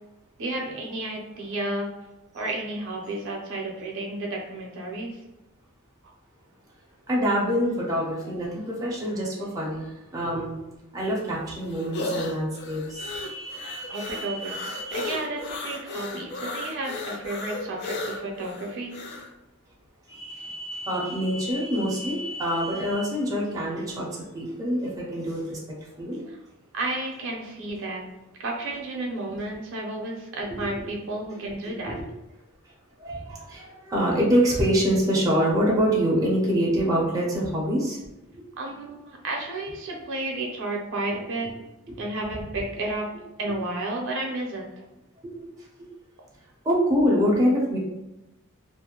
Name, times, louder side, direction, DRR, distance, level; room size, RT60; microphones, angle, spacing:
voice 1, 0.4-1.9 2.3-5.1 13.9-14.7 14.9-19.0 26.3-26.4 26.7-28.0 28.4-31.9 38.6-41.5 42.0-43.1 43.4-44.7, right 2 dB, 65° right, 0 dB, 0.6 m, -32 dB
voice 2, 7.1-10.6 10.9-15.1 15.9-16.0 20.1-26.3 30.5-30.6 31.9-32.0 33.0-38.0 38.3-38.4 41.9-42.0 45.2-45.5 45.8-45.9 46.6-47.8, equal, 15° right, -4 dB, 0.6 m, -26 dB
sound 1, 11.0-19.3, left 2 dB, 50° left, 0.3 m, -35 dB
2.4 x 2.1 x 2.8 m, 0.96 s
head